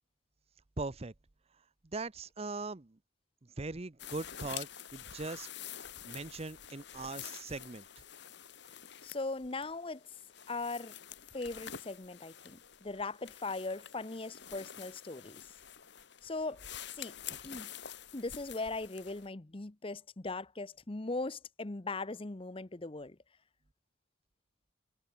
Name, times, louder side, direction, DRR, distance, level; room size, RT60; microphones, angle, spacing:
voice 1, 0.8-1.1 1.9-3.0 3.6-5.5 6.0-7.9, right 3 dB, 30° right, 0.7 m, -40 dB
sound 1, 4.0-19.3, left 9 dB, 55° left, 1.9 m, -48 dB
voice 2, 9.0-10.0 10.5-11.0 11.3-15.4 16.2-16.6 17.0-17.1 17.4-17.7 18.1-23.2, left 3 dB, 25° left, 0.8 m, -39 dB
head